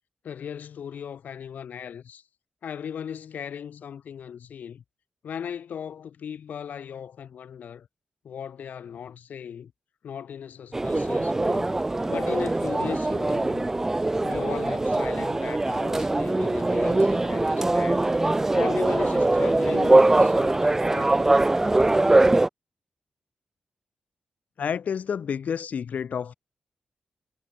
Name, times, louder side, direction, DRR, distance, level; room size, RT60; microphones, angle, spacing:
voice 1, 0.2-2.2 2.6-4.8 5.2-7.9 8.2-9.7 10.0-11.7 12.1-13.7 14.2-18.1 18.5-21.4, left 8 dB, 90° left, 5.1 m, -37 dB
sound 1, 10.7-22.5, right 2 dB, 15° right, 0.8 m, -22 dB
voice 2, 24.6-26.3, left 7 dB, 65° left, 6.7 m, -29 dB
wide cardioid pair, 160°, 3 cm